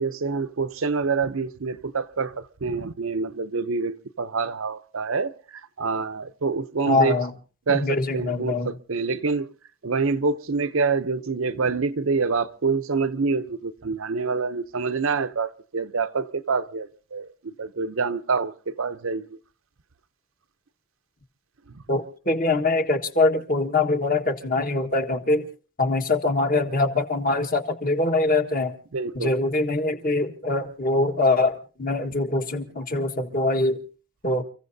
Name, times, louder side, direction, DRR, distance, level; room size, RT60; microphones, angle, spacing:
voice 1, 0.0-5.3 5.8-7.2 7.7-9.5 9.8-19.4 28.9-29.4, right 4 dB, 65° right, 0.7 m, -26 dB
voice 2, 6.9-7.3 7.7-8.7 21.9-25.5 25.8-28.7 29.1-33.8 34.2-34.4, left 2 dB, 40° left, 1.4 m, -23 dB
30.0 x 15.0 x 2.7 m
head